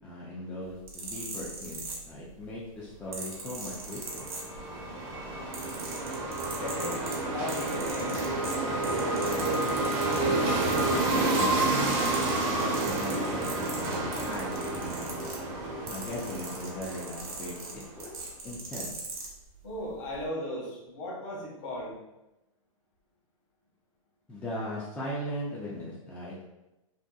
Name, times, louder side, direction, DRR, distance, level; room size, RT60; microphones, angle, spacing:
voice 1, 0.0-4.3 11.1-15.3 15.8-18.1 18.4-18.9 24.3-26.4, equal, 10° left, -7 dB, 0.3 m, -39 dB
sound 1, 0.7-2.4 3.1-4.9 5.2-10.2 10.6-11.6 11.9-19.3 20.0-20.2, right 4 dB, 85° right, 0.8 m, -40 dB
sound 2, 3.6-17.9, right 2 dB, 40° right, 0.7 m, -30 dB
voice 2, 6.5-9.5 19.6-22.0, left 1 dB, 55° left, -4 dB, 1.1 m, -37 dB
2.7 x 2.1 x 2.2 m, 0.96 s
hypercardioid pair, 135°, 18 cm